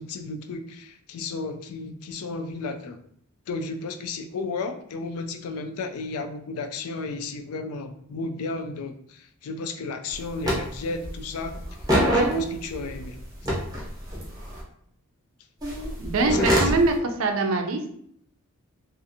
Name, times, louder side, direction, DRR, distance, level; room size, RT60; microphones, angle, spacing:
voice 1, 0.0-3.0 3.5-11.5 12.1-13.2 16.3-16.8, left 3 dB, 80° left, 7 dB, 0.3 m, -33 dB
sound 1, 10.1-10.2 10.4-11.2 11.4-13.0 13.4-14.6 15.6-16.8, equal, 15° right, 0.7 m, -24 dB
voice 2, 16.0-16.9 17.2-17.8, right 3 dB, 65° right, 5 dB, 0.4 m, -23 dB
2.5 x 2.4 x 2.7 m, 0.66 s
head